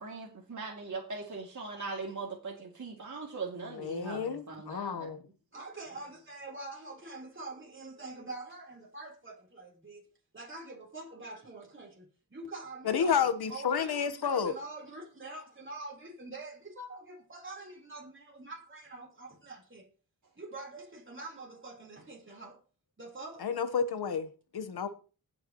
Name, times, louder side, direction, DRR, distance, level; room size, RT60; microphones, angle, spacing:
voice 1, 0.0-5.1, right 4 dB, 50° right, 2.5 m, -40 dB
voice 2, 3.8-5.2 12.8-14.5 23.4-24.3 24.5-24.9, left 6 dB, 90° left, 1.2 m, -30 dB
voice 3, 5.5-10.1 10.3-19.9 20.4-22.6 23.0-23.5, right 2 dB, 30° right, 3.9 m, -45 dB
19.0 x 6.9 x 3.0 m
cardioid pair, 65°, 37 cm